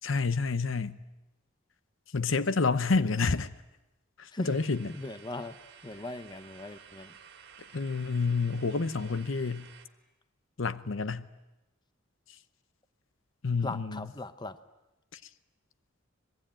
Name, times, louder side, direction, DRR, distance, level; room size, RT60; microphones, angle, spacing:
voice 1, 0.0-1.0 2.1-3.5 4.2-4.9 7.7-9.7 10.6-11.3 13.4-14.1 15.1-15.2, left 4 dB, 70° left, 0.8 m, -29 dB
sound 1, 4.4-9.9, right 7 dB, 55° right, 2.3 m, -53 dB
voice 2, 4.9-5.6 5.8-7.1 13.6-14.6, left 2 dB, 20° left, 0.9 m, -39 dB
25.5 x 20.0 x 9.0 m
head